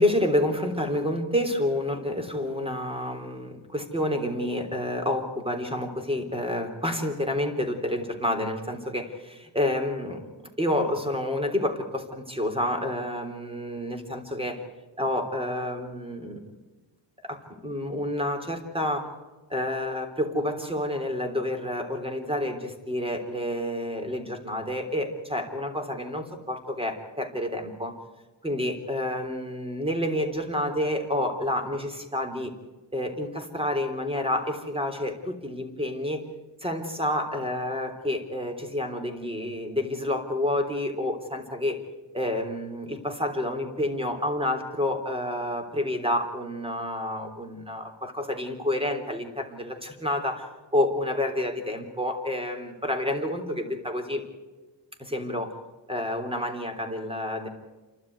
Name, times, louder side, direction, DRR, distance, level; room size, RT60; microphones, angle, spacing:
voice 1, 0.0-10.2 10.6-14.6 15.0-16.6 17.2-19.1 19.5-27.9 28.4-32.5 32.9-36.2 36.6-41.8 42.1-50.5 50.7-54.2 55.0-55.5 55.9-57.5, left 1 dB, 10° right, 5 dB, 3.5 m, -29 dB
28.0 x 12.5 x 9.5 m, 1.2 s
wide cardioid pair, 105°, 46 cm